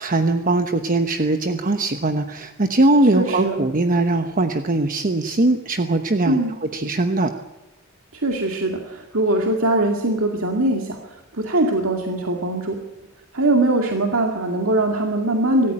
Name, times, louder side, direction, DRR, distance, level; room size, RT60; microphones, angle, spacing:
voice 1, 0.0-7.3, right 2 dB, 40° right, 7 dB, 1.0 m, -20 dB
voice 2, 3.1-3.6 6.3-6.5 8.1-12.8 13.3-15.7, right 2 dB, 80° right, 2 dB, 2.3 m, -21 dB
25.5 x 14.5 x 8.9 m, 1.1 s
head